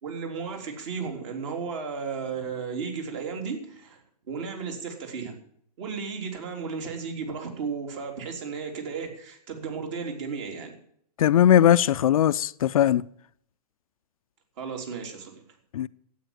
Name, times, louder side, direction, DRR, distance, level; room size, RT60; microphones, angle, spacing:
voice 1, 0.0-5.3 5.8-10.8 14.6-15.4, right 5 dB, 45° right, 3.6 m, -34 dB
voice 2, 11.2-13.0 15.7-15.9, left 10 dB, 60° left, 0.5 m, -19 dB
12.0 x 8.8 x 9.0 m
hypercardioid pair, 140°, 20 cm